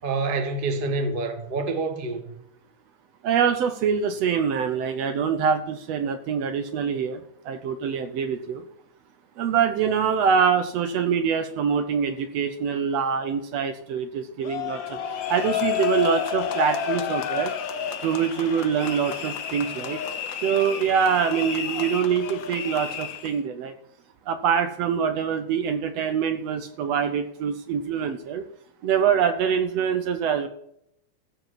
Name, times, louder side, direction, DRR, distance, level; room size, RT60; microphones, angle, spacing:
voice 1, 0.0-2.4, right 3 dB, 35° right, 0.8 m, -27 dB
voice 2, 3.2-7.2 7.4-8.6 9.4-15.0 15.3-17.5 18.0-20.0 20.4-23.7 24.3-28.4 28.8-30.5, right 7 dB, 70° right, 1.7 m, -24 dB
sound 1, 14.4-23.4, left 9 dB, 70° left, 1.1 m, -30 dB
15.0 x 5.0 x 9.1 m
omnidirectional pair, 3.5 m